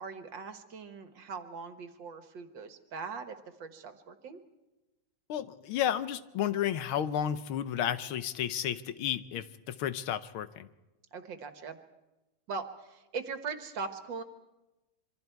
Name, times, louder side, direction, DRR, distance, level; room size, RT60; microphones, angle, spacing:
voice 1, 0.0-4.4 11.1-11.8 12.5-14.2, right 5 dB, 65° right, 8 dB, 2.0 m, -40 dB
voice 2, 5.3-10.7, left 10 dB, 85° left, 13 dB, 1.7 m, -32 dB
26.5 x 24.0 x 4.6 m, 1.1 s
omnidirectional pair, 2.2 m